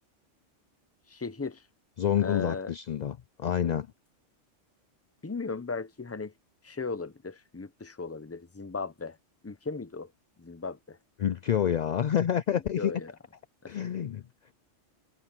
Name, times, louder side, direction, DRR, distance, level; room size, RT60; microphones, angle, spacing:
voice 1, 1.1-1.6 2.2-2.7 5.2-6.3 6.6-9.2 9.4-10.1 10.4-11.0 12.8-13.1 13.6-13.7, left 4 dB, 15° left, 0.6 m, -36 dB
voice 2, 2.0-3.9 11.2-12.9 13.7-14.2, left 9 dB, 65° left, 0.4 m, -28 dB
omnidirectional pair, 1.2 m